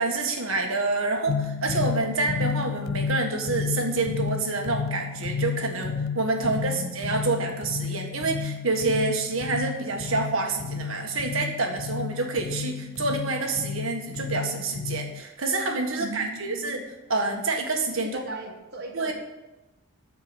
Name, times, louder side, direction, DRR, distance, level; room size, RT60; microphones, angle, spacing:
voice 1, 0.0-16.8 17.1-18.2 18.9-19.1, right 3 dB, 75° right, 2 dB, 1.7 m, -27 dB
sound 1, 1.3-15.2, left 5 dB, 70° left, 0.4 m, -32 dB
voice 2, 6.4-7.2 16.0-16.9 18.0-19.1, right 2 dB, 50° right, 0 dB, 1.5 m, -39 dB
13.5 x 4.7 x 8.7 m, 1.0 s
head